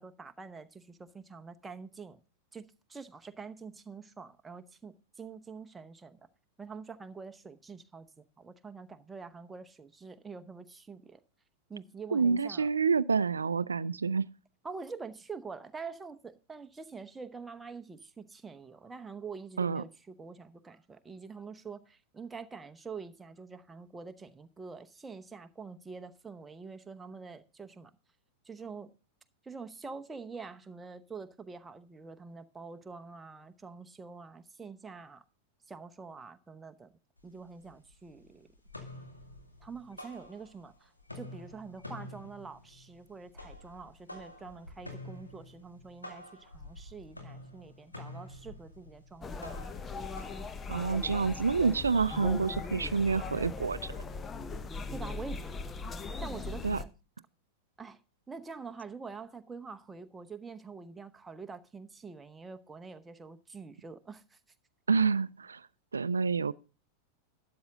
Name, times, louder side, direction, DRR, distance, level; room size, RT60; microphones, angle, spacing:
voice 1, 0.0-2.2 2.5-2.6 2.9-6.3 6.6-11.2 11.7-12.7 14.6-27.9 28.4-28.9 29.4-35.2 35.7-36.9 37.2-38.5 39.6-49.7 54.9-55.6 56.2-56.9 57.8-58.0 58.3-64.4, right 5 dB, 10° right, 0.9 m, -46 dB
voice 2, 12.1-14.3 19.6-19.8 50.7-54.0 56.6-56.8 64.9-65.6 65.9-66.5, right 5 dB, 75° right, 0.4 m, -28 dB
sound 1, 37.2-37.3 37.6-38.2 38.5-40.7 41.0-51.1, left 1 dB, 85° left, 2.3 m, -48 dB
sound 2, 49.2-56.8, left 4 dB, 20° left, 0.8 m, -39 dB
12.5 x 8.8 x 3.7 m
figure-of-eight pair, 90°, 0 cm